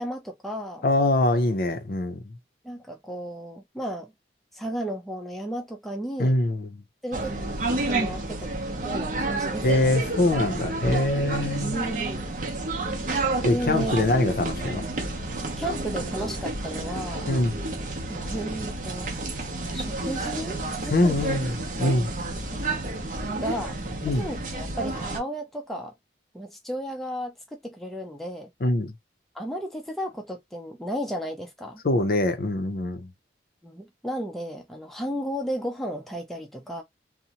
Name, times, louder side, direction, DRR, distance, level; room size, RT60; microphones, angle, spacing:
voice 1, 0.0-0.9 2.6-4.1 4.5-6.4 7.0-7.4 7.9-8.5 8.8-10.1 11.6-12.3 13.5-13.9 15.6-17.3 18.1-19.1 19.7-21.4 23.4-23.7 24.1-25.9 26.3-28.5 29.3-31.8 33.6-36.8, equal, ahead, 0.4 m, -33 dB
voice 2, 0.8-2.2 6.2-6.8 9.6-11.8 13.4-14.8 17.3-17.6 20.9-21.5 21.8-22.1 24.0-24.3 28.6-28.9 31.8-33.1, left 2 dB, 55° left, 0.5 m, -23 dB
sound 1, 7.1-25.2, right 2 dB, 45° right, 0.6 m, -30 dB
2.7 x 2.1 x 2.8 m
head